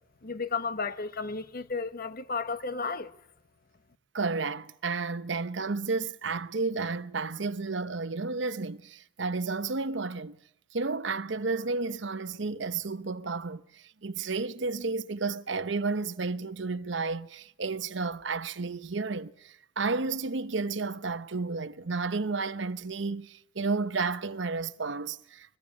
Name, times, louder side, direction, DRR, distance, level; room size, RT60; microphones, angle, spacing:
voice 1, 0.2-3.1, left 4 dB, 50° left, 1.2 m, -33 dB
voice 2, 4.1-10.4 10.7-25.6, right 4 dB, 65° right, 0.9 m, -32 dB
22.0 x 22.0 x 9.7 m
head